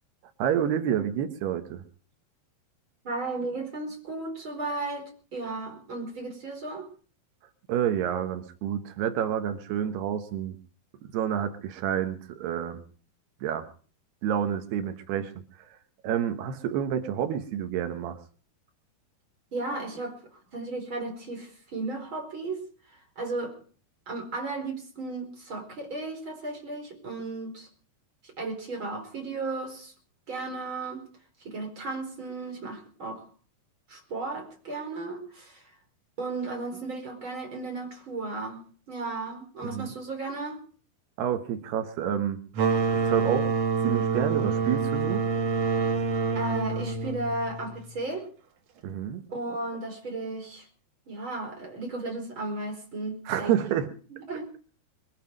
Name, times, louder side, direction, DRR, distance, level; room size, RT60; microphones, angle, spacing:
voice 1, 0.4-1.8 7.7-10.6 11.1-12.8 13.4-13.7 14.2-15.3 16.0-18.2 39.6-39.9 41.2-42.4 42.9-43.5 43.8-45.2 48.8-49.2 53.3-53.9, right 9 dB, 80° right, 8 dB, 3.2 m, -28 dB
voice 2, 3.0-6.9 19.5-20.2 20.5-23.6 24.1-27.7 28.4-29.9 30.3-31.1 31.4-33.2 33.9-35.7 36.2-40.6 46.3-48.3 49.3-50.7 51.1-53.5 54.1-54.6, right 3 dB, 30° right, 3 dB, 5.1 m, -35 dB
sound 1, 42.5-48.0, right 5 dB, 55° right, 2.0 m, -27 dB
23.0 x 11.5 x 5.3 m, 0.43 s
omnidirectional pair, 4.7 m